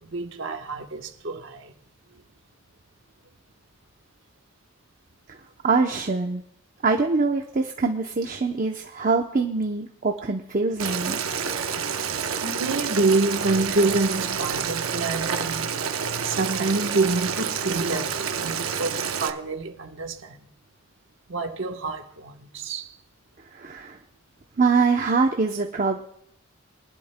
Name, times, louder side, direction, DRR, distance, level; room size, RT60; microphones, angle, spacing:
voice 1, 0.1-1.7 12.4-15.7 16.2-20.5 21.3-22.9, right 3 dB, 60° right, 1.2 m, -27 dB
voice 2, 5.6-6.4 6.8-11.2 23.5-24.0 24.6-26.0, right 4 dB, 40° right, 0.7 m, -24 dB
Boiling, 10.8-19.3, right 6 dB, 85° right, 0.8 m, -28 dB
24.0 x 11.5 x 2.2 m
head